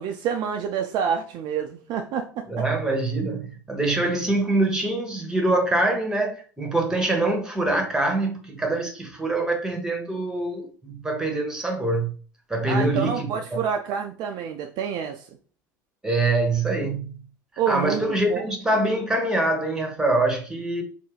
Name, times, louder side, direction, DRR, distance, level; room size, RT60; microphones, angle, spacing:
voice 1, 0.0-2.6 12.7-15.3 17.6-18.5, right 7 dB, 50° right, 0.4 m, -28 dB
voice 2, 2.5-12.1 12.5-13.6 16.0-17.1 17.7-20.8, right 2 dB, 5° right, 1.0 m, -24 dB
2.7 x 2.7 x 3.7 m
figure-of-eight pair, 65°, 10 cm